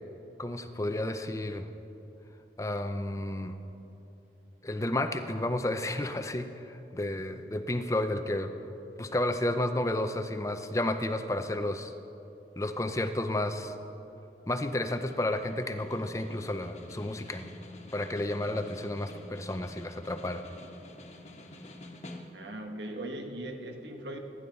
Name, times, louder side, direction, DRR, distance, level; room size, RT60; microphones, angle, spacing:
voice 1, 0.4-1.7 2.6-3.6 4.6-8.5 9.0-11.9 12.6-13.7 14.5-17.5 17.9-20.5, left 1 dB, 15° left, 8 dB, 0.5 m, -31 dB
Snare drum, 14.7-22.6, left 1 dB, 35° left, 1.4 m, -48 dB
voice 2, 22.3-24.2, right 1 dB, 85° right, 4 dB, 1.5 m, -39 dB
26.0 x 11.0 x 4.0 m, 2.9 s
head